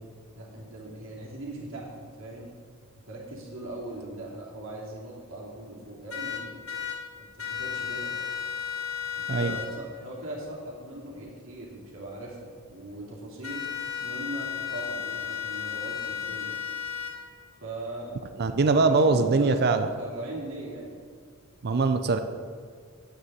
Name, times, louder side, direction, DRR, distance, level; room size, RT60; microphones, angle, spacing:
voice 1, 0.3-2.5 3.1-6.6 7.3-8.2 9.1-13.7 14.0-16.6 17.6-18.2 18.9-21.0, right 1 dB, 65° right, -4 dB, 2.8 m, -39 dB
sound 1, 6.1-7.0 7.4-9.7 13.4-17.1, left 8 dB, 75° left, 1.7 m, -33 dB
voice 2, 18.4-19.9 21.6-22.2, right 3 dB, 50° right, 8 dB, 0.5 m, -22 dB
8.9 x 5.4 x 7.9 m, 2.1 s
head